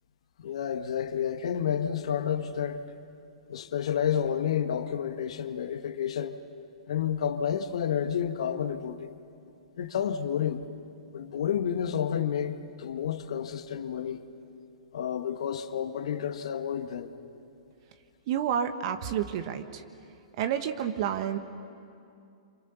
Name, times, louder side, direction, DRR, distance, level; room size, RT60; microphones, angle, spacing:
voice 1, 0.4-2.8 3.5-6.4 6.9-9.1 9.8-10.6 11.1-14.2 14.9-17.1, left 8 dB, 65° left, 1.4 m, -30 dB
voice 2, 18.3-19.8 20.4-21.4, right 9 dB, 50° right, 1.3 m, -29 dB
27.0 x 27.0 x 7.1 m
figure-of-eight pair, 115°, 4 cm